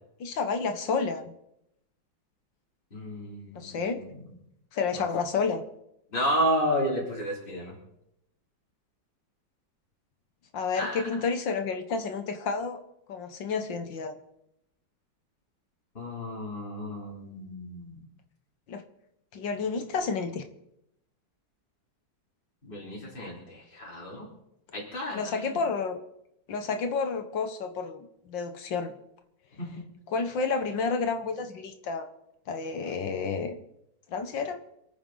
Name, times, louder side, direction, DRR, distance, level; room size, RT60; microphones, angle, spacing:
voice 1, 0.2-1.3 3.6-4.0 4.7-5.6 10.5-12.8 13.1-14.1 18.7-18.8 19.3-20.4 25.1-26.0 26.5-28.9 30.1-32.1 32.5-33.6 34.1-34.6, left 5 dB, 75° left, 7 dB, 1.9 m, -30 dB
voice 2, 2.9-4.1 4.9-5.0 6.1-7.7 10.7-10.9 15.9-18.0 22.7-24.3 24.7-25.6 29.6-29.7, equal, 25° left, -5 dB, 3.8 m, -31 dB
27.5 x 9.5 x 3.9 m, 0.81 s
omnidirectional pair, 2.1 m